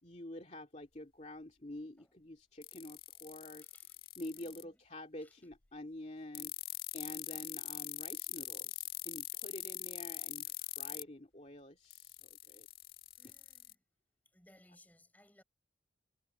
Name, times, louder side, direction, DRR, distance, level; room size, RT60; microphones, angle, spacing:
voice 1, 0.0-3.7 4.2-6.5 6.9-12.7 13.2-13.3, left 1 dB, 35° left, 2.4 m, -48 dB
sound 1, 2.6-4.6 6.3-11.0 11.9-13.7, left 14 dB, 55° left, 1.6 m, -42 dB
voice 2, 3.6-3.9 4.3-4.7 5.2-5.5 13.2-13.8 14.3-15.4, left 1 dB, 10° left, 6.6 m, -65 dB
head